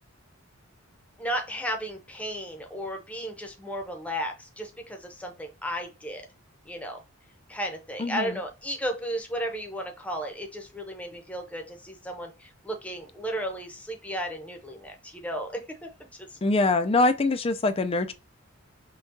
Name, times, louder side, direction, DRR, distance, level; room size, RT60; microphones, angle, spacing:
voice 1, 1.2-6.2 6.7-7.0 7.5-15.9 16.2-16.4, equal, 5° left, 0.8 m, -34 dB
voice 2, 8.0-8.4 16.4-18.1, left 2 dB, 25° left, 0.4 m, -24 dB
5.7 x 2.3 x 2.6 m
head